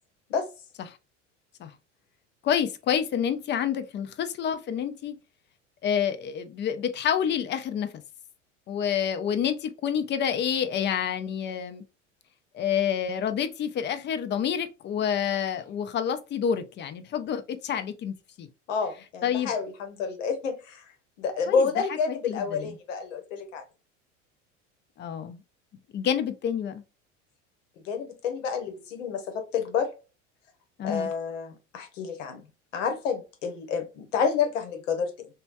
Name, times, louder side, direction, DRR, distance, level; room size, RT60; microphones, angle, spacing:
voice 1, 2.4-5.2 5.8-8.0 8.7-11.8 12.5-18.5 19.2-19.5 21.5-21.7 22.1-22.8 25.0-25.4 25.9-26.8 30.8-31.1, left 8 dB, 30° left, 0.5 m, -28 dB
voice 2, 18.7-20.8 21.2-23.6 27.8-29.9 30.8-32.4 32.7-35.3, left 6 dB, 75° left, 0.9 m, -29 dB
3.1 x 2.2 x 2.5 m
hypercardioid pair, 80°, 37 cm